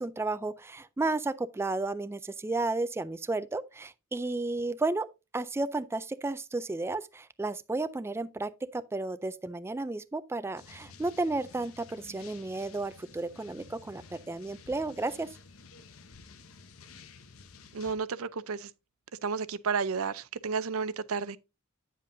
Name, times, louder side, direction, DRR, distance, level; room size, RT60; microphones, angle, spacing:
voice 1, 0.0-5.1 5.3-15.3, right 2 dB, 10° right, 0.3 m, -33 dB
sound 1, 10.6-17.9, left 4 dB, 80° left, 0.9 m, -52 dB
voice 2, 17.7-18.7 19.2-21.4, right 5 dB, 85° right, 0.5 m, -32 dB
9.1 x 7.5 x 2.6 m
head